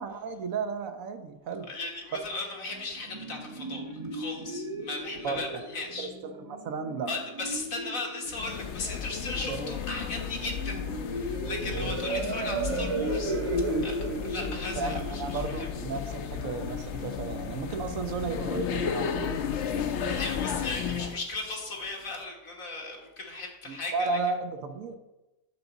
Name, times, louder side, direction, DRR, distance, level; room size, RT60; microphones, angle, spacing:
voice 1, 0.0-1.7 5.2-5.7 6.0-7.1 9.5-9.8 11.7-12.0 14.8-19.3 23.7-25.0, right 4 dB, 85° right, 8 dB, 1.2 m, -34 dB
voice 2, 1.7-3.8 4.1-6.1 7.1-13.3 13.8-15.7 20.1-24.2, left 3 dB, 85° left, 0 dB, 1.9 m, -37 dB
sound 1, 2.7-16.7, right 2 dB, 30° right, 0.6 m, -35 dB
sound 2, 8.3-21.2, left 7 dB, 65° left, 0.9 m, -34 dB
8.7 x 3.9 x 7.0 m, 1.0 s
omnidirectional pair, 1.4 m